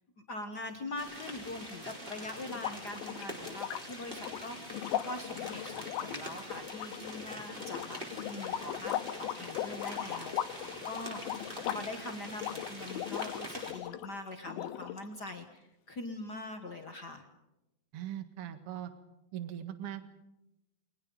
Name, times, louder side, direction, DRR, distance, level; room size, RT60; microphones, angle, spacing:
voice 1, 0.3-8.0 8.3-17.2, left 2 dB, 55° left, 4 dB, 1.1 m, -43 dB
sound 1, 1.0-13.7, equal, 15° right, 4.0 m, -45 dB
sound 2, 2.5-14.1 14.5-15.3, left 11 dB, 85° left, 2.8 m, -39 dB
voice 2, 17.9-18.9 19.3-20.0, right 11 dB, 45° right, 9 dB, 2.2 m, -40 dB
29.5 x 22.0 x 5.4 m, 0.93 s
omnidirectional pair, 4.2 m